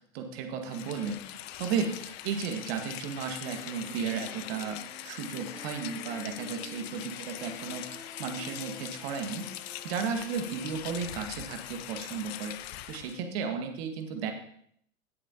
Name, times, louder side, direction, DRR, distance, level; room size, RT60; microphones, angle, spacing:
voice 1, 0.0-9.4 9.8-12.6 12.9-14.3, right 6 dB, 45° right, 5 dB, 1.8 m, -34 dB
Rain, 0.6-13.2, left 13 dB, 50° left, 0.7 m, -42 dB
sound 1, 3.4-11.4 11.8-11.9, left 2 dB, 10° left, 1.3 m, -51 dB
17.5 x 7.0 x 2.9 m, 0.68 s
hypercardioid pair, 105°, 40 cm